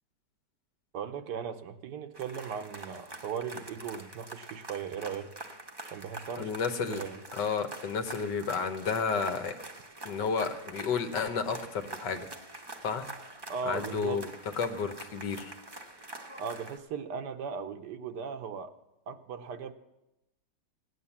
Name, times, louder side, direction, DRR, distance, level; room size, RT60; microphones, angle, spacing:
voice 1, 0.9-5.3 5.9-6.5 6.9-7.2 13.5-14.2 16.4-18.7 19.1-19.7, right 6 dB, 80° right, 7 dB, 1.4 m, -37 dB
sound 1, 2.1-16.8, right 2 dB, 25° right, 0.6 m, -45 dB
voice 2, 6.4-7.0 7.3-9.5 10.0-12.3 12.8-13.1 13.7-14.3 14.5-15.5, left 5 dB, 85° left, 7 dB, 1.7 m, -31 dB
17.0 x 9.5 x 7.2 m, 0.93 s
omnidirectional pair, 1.8 m